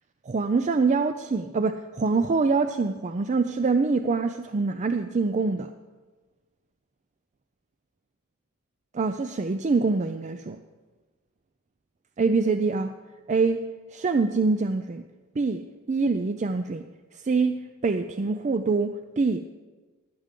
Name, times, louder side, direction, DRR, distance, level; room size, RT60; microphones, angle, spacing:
voice 1, 0.3-5.7 8.9-10.6 12.2-13.0 13.3-15.0 15.4-16.9 17.1-19.4, right 4 dB, 30° right, 9 dB, 0.4 m, -25 dB
19.0 x 8.8 x 5.2 m, 1.3 s
head